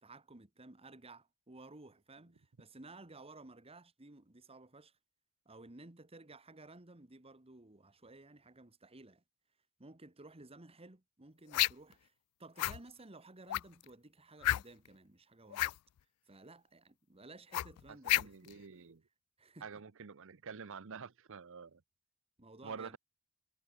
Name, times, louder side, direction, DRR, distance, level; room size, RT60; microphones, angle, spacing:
voice 1, 0.0-5.0 5.4-9.2 9.8-12.1 12.4-15.7 16.3-18.6 19.4-19.8 22.4-23.0, right 2 dB, 25° right, 1.6 m, -55 dB
sound 1, 11.5-11.9 12.6-12.8 13.5-13.8 14.4-14.9 15.5-15.8 17.5-18.5, left 15 dB, 75° left, 0.3 m, -31 dB
voice 2, 18.2-19.0 19.6-21.8 22.6-23.0, right 5 dB, 65° right, 0.8 m, -47 dB
head